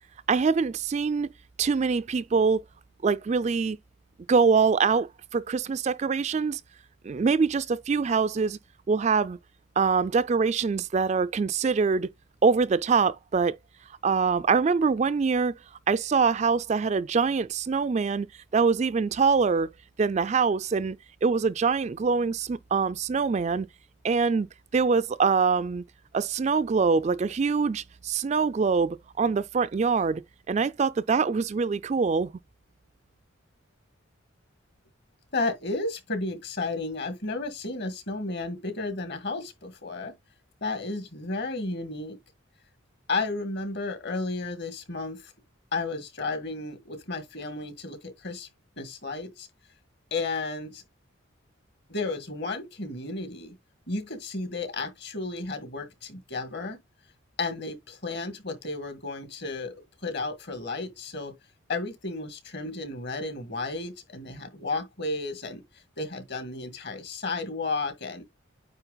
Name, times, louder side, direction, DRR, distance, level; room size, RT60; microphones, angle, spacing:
voice 1, 0.3-1.3 1.6-2.6 3.0-3.8 4.3-6.6 7.0-8.6 8.9-9.4 9.8-12.1 12.4-13.6 14.0-15.5 15.9-18.3 18.5-19.7 20.0-23.7 24.0-24.5 24.7-25.8 26.1-30.2 30.5-32.3, right 5 dB, 35° right, 0.3 m, -24 dB
voice 2, 35.3-40.1 40.6-42.2 43.1-45.3 45.7-48.5 48.8-49.5 50.1-50.8 51.9-53.6 53.9-56.8 57.4-61.3 61.7-65.6 66.0-68.2, left 3 dB, 55° left, 1.8 m, -33 dB
9.1 x 3.2 x 3.9 m
head